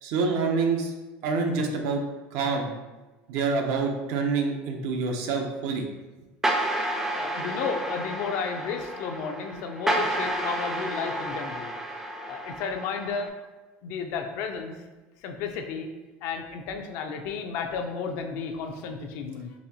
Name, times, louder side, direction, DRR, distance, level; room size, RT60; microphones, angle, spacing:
voice 1, 0.0-0.9 1.2-2.0 2.3-2.7 3.3-5.9, right 4 dB, 70° right, 3 dB, 0.6 m, -26 dB
sound 1, 6.4-13.3, right 1 dB, 10° right, 0.4 m, -31 dB
voice 2, 7.1-11.7 12.3-13.3 13.8-14.7 15.2-15.9 16.2-19.5, left 5 dB, 65° left, 4 dB, 0.5 m, -32 dB
4.0 x 2.6 x 2.8 m, 1.2 s
cardioid pair, 135°, 5 cm